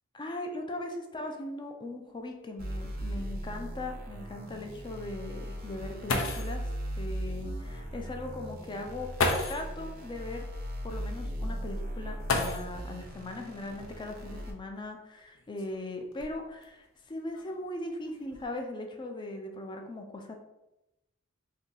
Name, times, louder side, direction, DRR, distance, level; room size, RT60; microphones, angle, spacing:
voice 1, 0.1-6.6 7.0-9.1 9.5-10.4 10.8-20.3, left 2 dB, 20° left, 4 dB, 0.4 m, -39 dB
sound 1, 2.2-2.3 2.7-2.8 3.4-3.5 5.7-5.8 6.1-6.6 7.9-8.0 9.1-9.7 12.2-13.0 14.4-14.5 15.2-16.6 17.3-17.7 18.1-18.5, left 3 dB, 85° left, 0.5 m, -32 dB
sound 2, 2.6-14.5, equal, 45° right, 0.6 m, -38 dB
2.7 x 2.6 x 3.8 m, 0.93 s
head